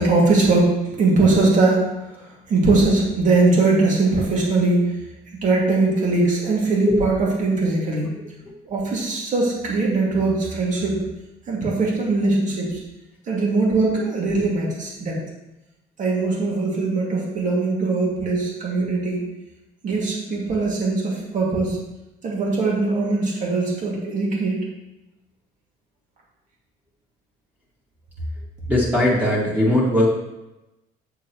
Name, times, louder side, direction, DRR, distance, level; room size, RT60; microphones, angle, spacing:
voice 1, 0.0-5.0 5.4-8.1 8.6-11.1 11.5-12.8 13.3-15.2 16.0-19.2 19.8-21.8 22.2-24.6, right 3 dB, 50° right, -3 dB, 2.5 m, -21 dB
voice 2, 28.7-30.1, left 1 dB, 10° right, -7 dB, 2.3 m, -19 dB
8.0 x 7.0 x 3.1 m, 0.97 s
cardioid pair, 110°, 17 cm